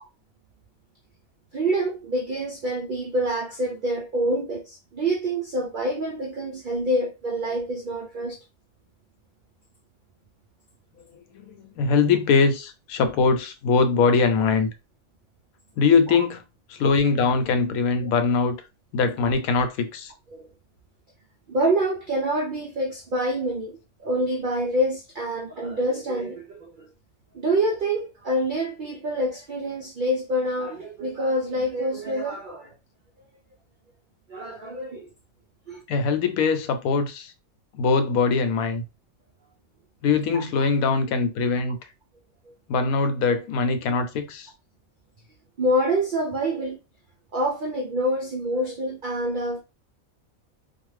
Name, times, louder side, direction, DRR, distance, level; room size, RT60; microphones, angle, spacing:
voice 1, 1.5-8.4 16.1-16.3 18.0-18.1 20.3-20.5 21.5-26.9 27.3-32.7 34.3-35.1 35.7-35.8 40.3-40.7 45.6-46.8 47.3-49.6, right 1 dB, 85° right, 0.4 m, -26 dB
voice 2, 11.3-14.7 15.8-16.4 16.7-18.6 18.9-20.1 35.9-37.3 37.7-38.8 40.0-41.8 42.7-44.5, left 5 dB, 85° left, 1.1 m, -22 dB
2.6 x 2.4 x 3.1 m
omnidirectional pair, 1.5 m